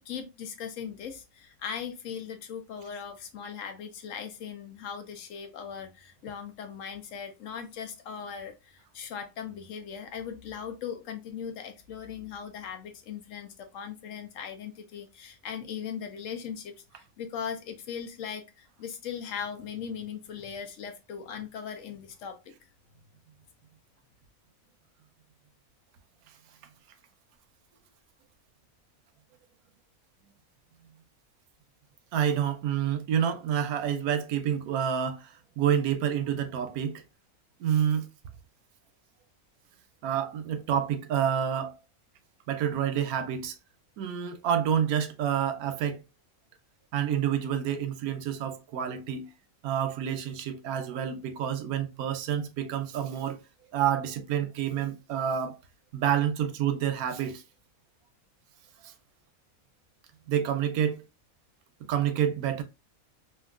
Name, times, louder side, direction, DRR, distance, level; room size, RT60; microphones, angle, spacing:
voice 1, 0.1-22.4, left 7 dB, 70° left, 0.9 m, -39 dB
voice 2, 32.1-37.0 37.6-38.1 40.0-41.8 42.5-43.6 44.0-46.0 46.9-49.3 49.6-53.4 53.7-55.6 55.9-57.4 58.8-58.9 60.3-61.0 61.9-62.6, right 9 dB, 90° right, 1.1 m, -28 dB
2.9 x 2.5 x 2.3 m
omnidirectional pair, 1.5 m